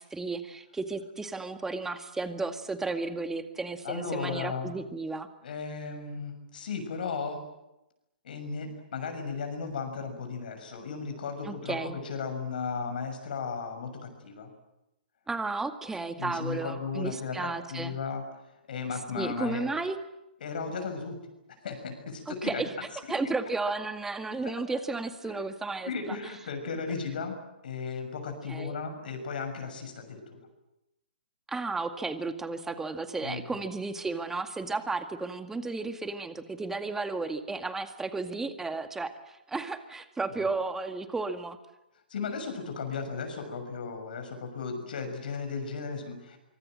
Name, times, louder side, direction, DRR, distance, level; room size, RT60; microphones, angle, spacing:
voice 1, 0.0-5.3 11.4-12.0 15.3-17.9 19.2-20.0 22.3-22.7 23.1-26.2 28.5-28.7 31.5-41.6, right 3 dB, 10° right, 8 dB, 2.0 m, -33 dB
voice 2, 3.8-4.7 5.4-7.4 8.2-14.5 16.2-18.2 18.7-19.7 20.4-21.2 21.6-22.6 25.2-25.4 25.9-27.4 27.6-30.4 33.2-33.7 40.3-40.5 42.1-46.4, left 5 dB, 60° left, 6 dB, 6.5 m, -35 dB
25.0 x 24.0 x 7.7 m, 0.92 s
figure-of-eight pair, 125°, 5 cm